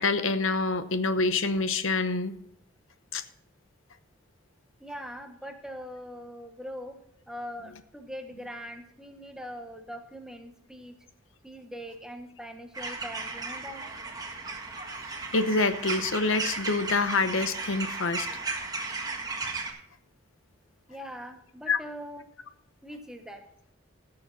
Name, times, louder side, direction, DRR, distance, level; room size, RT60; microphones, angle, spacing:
voice 1, 0.0-2.3 3.1-3.2 15.3-18.3 21.7-21.8, left 3 dB, 75° left, 11 dB, 0.9 m, -26 dB
voice 2, 4.8-7.0 7.3-10.9 11.4-13.8 20.9-22.3 22.8-23.4, equal, 5° right, 5 dB, 1.0 m, -42 dB
sound 1, 12.7-19.7, right 3 dB, 20° right, 1.5 m, -35 dB
16.0 x 6.9 x 4.0 m, 0.73 s
head